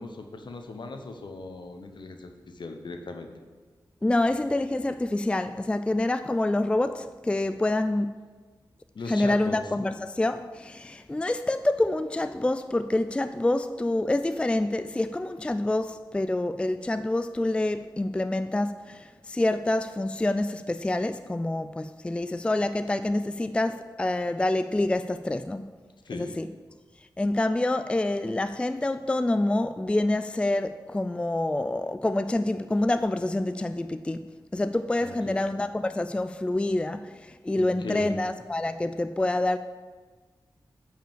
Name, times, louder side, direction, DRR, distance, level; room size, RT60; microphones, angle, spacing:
voice 1, 0.0-3.3 8.9-9.6 26.0-26.4 35.0-35.4 37.6-38.2, left 3 dB, 70° left, 1.0 m, -38 dB
voice 2, 4.0-8.1 9.1-25.6 26.1-26.5 27.2-39.6, left 2 dB, 15° left, 0.3 m, -27 dB
8.9 x 5.0 x 7.4 m
wide cardioid pair, 75°, 8 cm